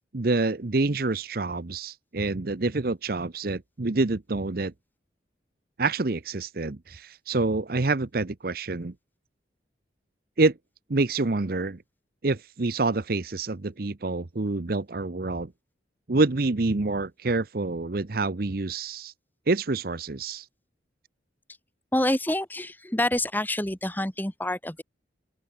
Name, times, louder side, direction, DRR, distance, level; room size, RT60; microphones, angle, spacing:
voice 1, 0.1-4.7 5.8-8.9 10.4-10.6 10.9-11.8 12.2-15.5 16.1-19.1 19.5-20.4, right 3 dB, 55° right, 0.8 m, -27 dB
voice 2, 21.9-24.8, left 1 dB, 10° left, 2.2 m, -27 dB
open air
head